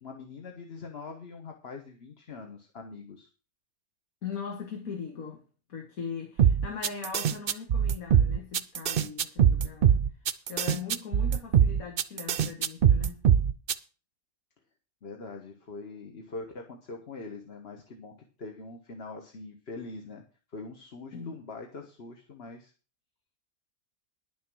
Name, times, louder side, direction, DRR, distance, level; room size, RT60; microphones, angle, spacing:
voice 1, 0.0-3.3 15.0-18.1 18.4-20.2 20.5-22.7, left 3 dB, 45° left, 1.6 m, -43 dB
voice 2, 4.2-5.4 5.7-10.0 10.5-13.2 21.1-21.4, left 6 dB, 80° left, 2.1 m, -39 dB
sound 1, 6.4-13.7, right 8 dB, 50° right, 0.7 m, -22 dB
11.0 x 7.2 x 6.2 m
omnidirectional pair, 1.5 m